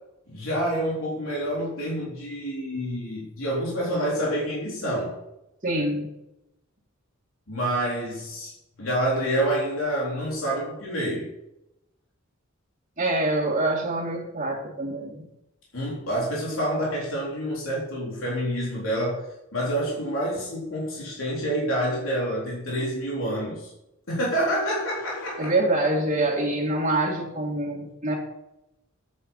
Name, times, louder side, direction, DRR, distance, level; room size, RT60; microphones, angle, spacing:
voice 1, 0.3-5.2 7.5-8.5 8.8-11.3 15.7-19.2 19.5-23.7 24.1-25.5, right 1 dB, 70° left, -5 dB, 3.9 m, -27 dB
voice 2, 5.6-6.1 13.0-15.3 25.4-28.1, right 2 dB, 35° right, -7 dB, 2.4 m, -25 dB
9.5 x 9.4 x 5.6 m, 0.88 s
head